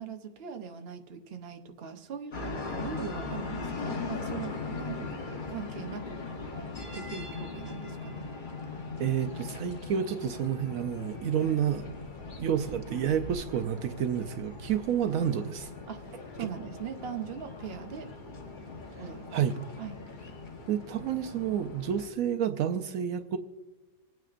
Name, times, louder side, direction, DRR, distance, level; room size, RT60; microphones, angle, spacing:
voice 1, 0.0-6.2 6.9-8.2 15.1-15.3 15.9-16.0 16.4-18.1 19.0-19.3 19.8-20.0, right 7 dB, 50° right, 6 dB, 1.0 m, -40 dB
sound 1, 2.3-22.1, left 3 dB, 35° left, 1.2 m, -40 dB
voice 2, 9.0-11.9 12.4-15.7 16.4-16.5 19.3-19.5 20.7-23.4, right 9 dB, 75° right, 7 dB, 1.0 m, -29 dB
26.5 x 9.1 x 2.5 m, 1.2 s
omnidirectional pair, 1.5 m